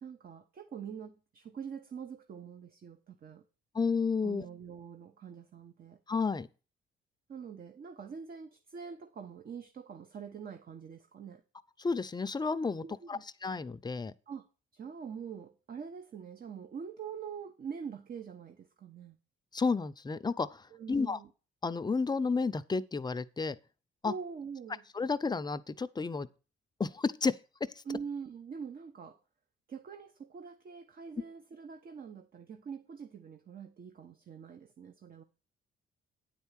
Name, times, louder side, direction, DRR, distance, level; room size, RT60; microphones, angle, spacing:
voice 1, 0.0-3.4 4.2-6.0 7.3-11.4 12.8-13.2 14.3-14.4 14.7-19.2 20.7-21.3 24.0-24.8 27.9-29.2 29.7-35.2, right 6 dB, 50° right, 0.9 m, -44 dB
voice 2, 3.7-4.5 6.1-6.5 11.8-14.1 19.5-21.2 21.6-23.6 24.0-24.1 24.9-26.3 26.8-27.3, left 4 dB, 20° left, 0.5 m, -31 dB
9.2 x 4.6 x 7.3 m
cardioid pair, 90°, 20 cm